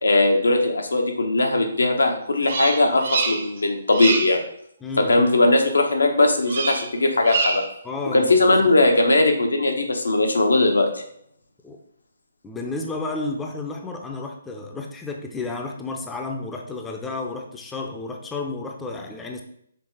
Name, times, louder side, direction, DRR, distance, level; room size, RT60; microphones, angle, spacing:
voice 1, 0.0-4.4 5.0-7.6 8.1-10.9, left 2 dB, 75° left, 3 dB, 1.2 m, -19 dB
Bird vocalization bird call bird song, 2.4-3.6 3.9-4.4 6.5-6.9 7.2-7.8, right 4 dB, 50° right, 0.9 m, -26 dB
voice 2, 4.8-5.1 7.8-8.5 11.6-11.8 12.4-19.4, left 3 dB, 10° left, 2 dB, 0.7 m, -32 dB
5.9 x 3.7 x 4.9 m, 0.70 s
figure-of-eight pair, 140°, 0 cm